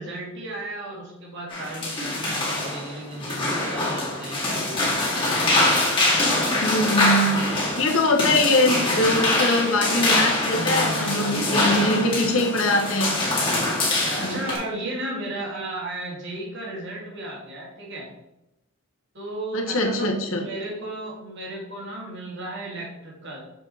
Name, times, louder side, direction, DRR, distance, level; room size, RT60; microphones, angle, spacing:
voice 1, 0.0-5.0 10.5-12.4 13.7-18.1 19.1-23.4, right 1 dB, 55° right, -3 dB, 2.3 m, -34 dB
sound 1, 1.5-14.6, left 2 dB, 25° left, 1.9 m, -24 dB
voice 2, 6.6-13.2 14.2-14.4 19.5-20.4, left 1 dB, 70° left, 2 dB, 1.3 m, -22 dB
6.6 x 4.7 x 4.2 m, 0.89 s
head